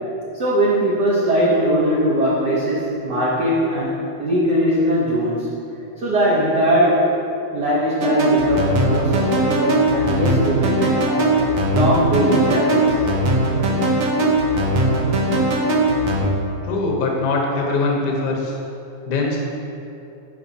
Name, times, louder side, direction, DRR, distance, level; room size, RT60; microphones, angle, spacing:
voice 1, 0.3-5.5 6.0-7.1 7.5-11.3 11.7-13.0, equal, 85° right, -6 dB, 0.9 m, -20 dB
sound 1, 8.0-16.2, right 1 dB, 65° right, 1.4 m, -19 dB
voice 2, 16.6-18.6 19.0-19.4, left 3 dB, 70° left, -1 dB, 1.0 m, -22 dB
11.5 x 5.5 x 2.8 m, 2.8 s
omnidirectional pair, 3.3 m